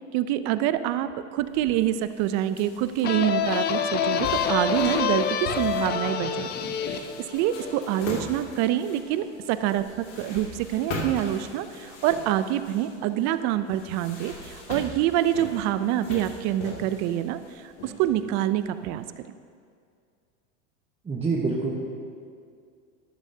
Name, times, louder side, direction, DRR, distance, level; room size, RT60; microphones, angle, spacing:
voice 1, 0.1-19.0, right 12 dB, 50° right, 12 dB, 0.5 m, -26 dB
sound 1, 1.4-18.9, left 1 dB, 70° left, 2.6 m, -41 dB
sound 2, 3.0-8.5, left 7 dB, 25° left, 0.5 m, -27 dB
voice 2, 21.1-21.7, right 4 dB, 15° right, -4 dB, 1.1 m, -26 dB
13.0 x 12.0 x 2.8 m, 2.3 s
supercardioid pair, 125°, 37 cm